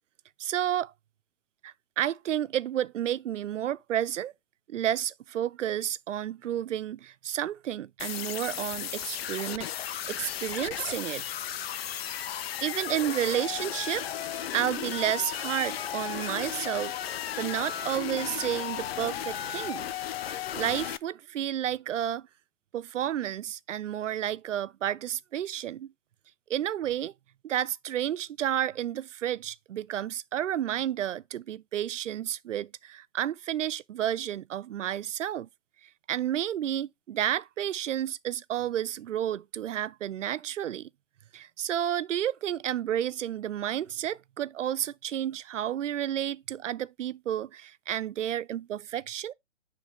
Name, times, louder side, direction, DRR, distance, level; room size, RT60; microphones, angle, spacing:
voice 1, 0.4-0.9 1.6-4.3 4.7-11.2 12.6-14.1 14.5-19.9 20.5-22.3 22.7-25.9 26.5-27.1 27.4-35.5 36.1-40.9 41.3-49.3, right 11 dB, 85° right, 0.5 m, -31 dB
sound 1, 8.0-21.0, left 10 dB, 55° left, 0.5 m, -35 dB
9.5 x 3.3 x 3.0 m
hypercardioid pair, 135°, 36 cm